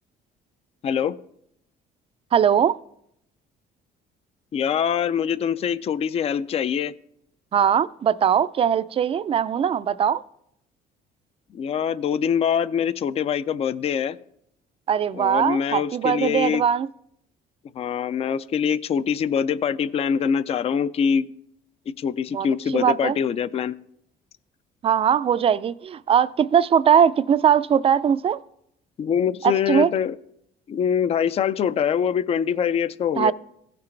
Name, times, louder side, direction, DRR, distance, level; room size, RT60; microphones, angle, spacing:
voice 1, 0.8-1.2 4.5-6.9 11.5-14.2 15.1-16.6 17.7-21.3 22.0-23.7 29.0-30.2 30.7-33.3, left 7 dB, 35° left, 0.4 m, -24 dB
voice 2, 2.3-2.8 7.5-10.2 14.9-16.9 22.3-22.5 22.7-23.2 24.8-28.4 29.4-29.9 33.2-33.3, right 8 dB, 35° right, 0.4 m, -20 dB
16.0 x 5.9 x 3.3 m
cardioid pair, 110°, 17 cm